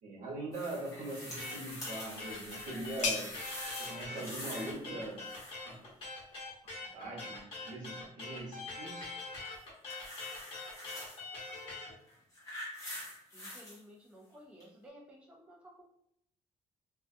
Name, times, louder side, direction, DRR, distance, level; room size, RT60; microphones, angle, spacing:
voice 1, 0.0-3.3 3.8-5.3 5.7-5.9 6.9-9.1, right 2 dB, 85° right, -1 dB, 0.8 m, -41 dB
sound 1, 0.5-4.8 5.0-5.7 9.4-11.2 12.0-13.8 14.6-14.7, left 1 dB, 25° left, 0.8 m, -45 dB
sound 2, 1.4-11.9, left 3 dB, 45° left, 1.0 m, -44 dB
sound 3, 1.7-7.1, left 4 dB, 70° left, 0.5 m, -43 dB
voice 2, 13.3-15.8, equal, 10° right, -2 dB, 0.4 m, -55 dB
2.2 x 2.2 x 2.6 m, 0.70 s
cardioid pair, 165°, 13 cm